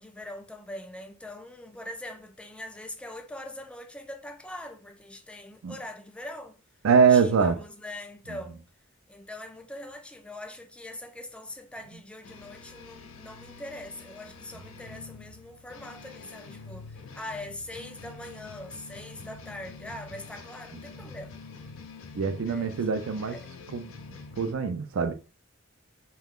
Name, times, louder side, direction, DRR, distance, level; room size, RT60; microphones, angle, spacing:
voice 1, 0.0-6.6 7.1-8.6 9.1-21.4 22.5-22.9 23.2-23.5, left 1 dB, 5° left, 0.3 m, -42 dB
voice 2, 6.8-7.6 8.3-8.4 22.1-23.4 23.7-23.9 24.4-25.1, right 6 dB, 80° right, 0.4 m, -23 dB
sound 1, 12.2-24.5, left 4 dB, 75° left, 0.5 m, -46 dB
2.4 x 2.2 x 3.5 m
head